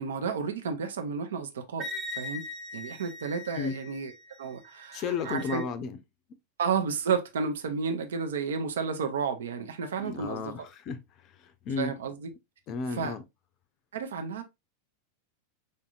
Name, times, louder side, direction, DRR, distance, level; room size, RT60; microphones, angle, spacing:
voice 1, 0.0-2.5 2.7-4.1 4.4-5.6 6.6-10.7 11.8-12.3 12.9-13.2 13.9-14.4, right 6 dB, 65° right, 0.7 m, -32 dB
Wind instrument woodwind instrument, 1.8-5.6, left 1 dB, 30° right, 1.0 m, -41 dB
voice 2, 4.9-6.0 10.0-11.0 11.4-11.9 12.7-13.2, left 5 dB, 35° left, 0.5 m, -33 dB
5.1 x 2.7 x 2.4 m
figure-of-eight pair, 90°, 0 cm